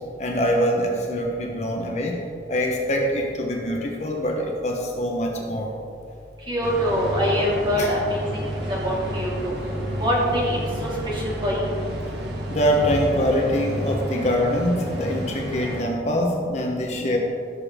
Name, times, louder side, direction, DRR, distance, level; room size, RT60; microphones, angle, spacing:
voice 1, 0.2-2.2 2.5-5.7 6.8-6.9 7.8-7.9 12.5-17.2, equal, 40° left, 0 dB, 1.1 m, -24 dB
voice 2, 6.5-8.5 8.8-9.5 10.0-11.6, equal, 25° right, -5 dB, 2.5 m, -24 dB
sound 1, 6.6-15.8, equal, 70° right, 1.7 m, -31 dB
16.5 x 6.9 x 3.7 m, 2.5 s
head